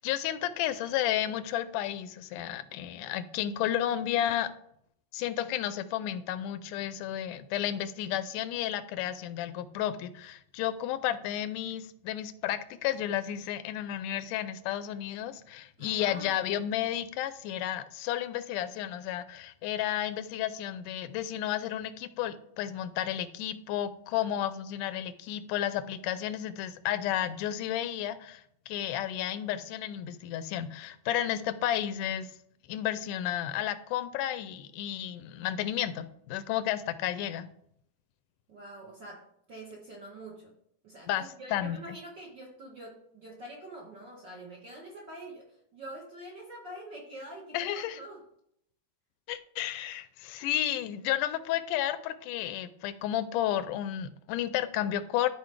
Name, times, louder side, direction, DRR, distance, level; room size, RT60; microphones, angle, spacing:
voice 1, 0.0-4.5 5.1-32.3 32.7-37.5 41.1-41.2 41.5-41.8 47.5-48.0 49.3-55.3, left 11 dB, 85° left, 13 dB, 2.1 m, -32 dB
voice 2, 15.8-16.5 24.1-24.3 38.5-40.5 40.8-48.2, right 1 dB, 60° right, -2 dB, 1.2 m, -46 dB
12.5 x 4.8 x 3.3 m, 0.71 s
omnidirectional pair, 3.6 m